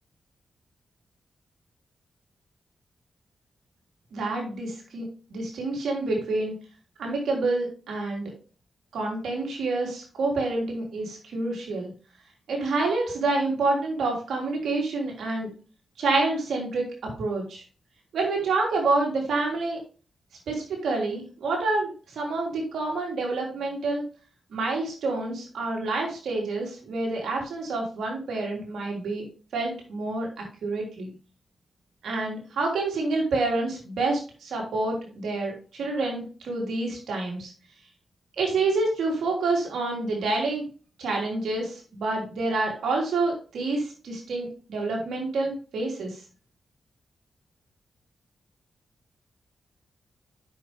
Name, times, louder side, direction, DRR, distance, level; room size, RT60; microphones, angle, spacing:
voice 1, 4.1-5.0 5.3-6.5 7.0-8.3 8.9-11.9 12.5-15.5 16.0-16.8 17.2-17.6 18.1-19.8 20.5-24.0 24.5-29.3 29.5-30.3 30.6-31.1 32.0-37.5 38.4-40.6 41.0-46.2, right 3 dB, 80° right, 0 dB, 3.5 m, -28 dB
8.4 x 6.9 x 3.6 m, 0.37 s
cardioid pair, 55°, 0 cm